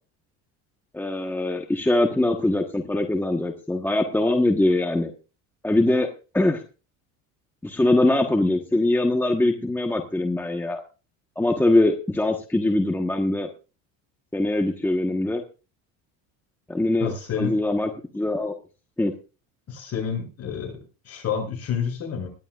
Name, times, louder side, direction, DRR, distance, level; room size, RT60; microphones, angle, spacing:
voice 1, 0.9-5.1 5.6-6.1 6.3-6.6 7.6-10.8 11.4-13.5 14.3-15.4 16.7-18.5 19.0-19.1, left 2 dB, 5° left, 3 dB, 1.2 m, -22 dB
voice 2, 17.0-17.5 19.7-20.7 21.0-22.3, left 7 dB, 45° left, 2 dB, 7.2 m, -29 dB
20.5 x 12.0 x 2.5 m, 0.34 s
cardioid pair, 120°, 35 cm